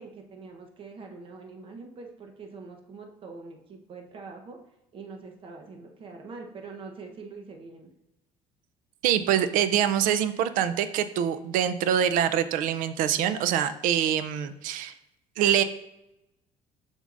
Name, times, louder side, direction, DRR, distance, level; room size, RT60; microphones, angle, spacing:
voice 1, 0.0-4.6 4.9-7.9, right 4 dB, 40° right, 3 dB, 0.9 m, -44 dB
voice 2, 9.0-14.9 15.4-15.6, right 9 dB, 75° right, 12 dB, 0.5 m, -25 dB
7.1 x 5.4 x 2.5 m, 0.89 s
cardioid pair, 135°, 14 cm